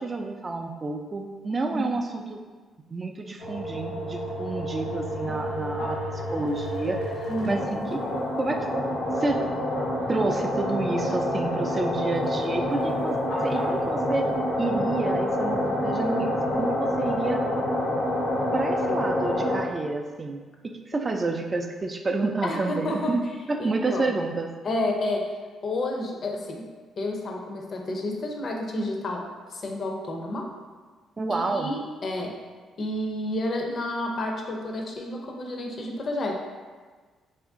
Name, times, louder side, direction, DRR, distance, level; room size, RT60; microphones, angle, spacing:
voice 1, 0.0-2.4 2.9-6.0 6.3-7.0 7.5-8.0 8.4-8.7 9.2-9.5 10.1-13.1 13.4-14.3 14.6-17.4 18.5-23.2 23.5-24.5 31.2-31.7, right 3 dB, 30° right, 4 dB, 0.3 m, -29 dB
sound 1, 3.4-19.6, left 1 dB, 85° left, 1.1 m, -27 dB
voice 2, 7.3-7.9 20.9-21.1 22.4-23.2 23.6-24.1 24.6-26.7 27.0-30.5 31.3-32.4 32.8-36.3, left 1 dB, 50° left, 1 dB, 0.5 m, -30 dB
2.9 x 2.5 x 3.6 m, 1.4 s
cardioid pair, 90°, 0 cm